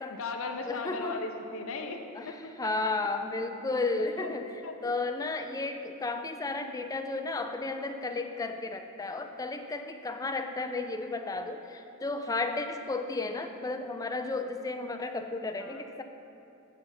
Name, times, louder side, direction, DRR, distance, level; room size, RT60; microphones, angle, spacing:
voice 1, 0.1-2.7 4.0-4.3 4.6-4.8 11.4-11.5 15.6-15.8, left 3 dB, 65° left, 4 dB, 0.6 m, -37 dB
voice 2, 0.7-1.2 2.2-2.3 2.6-4.5 4.8-16.0, left 3 dB, 15° left, 6 dB, 0.4 m, -33 dB
8.2 x 5.3 x 5.7 m, 2.7 s
head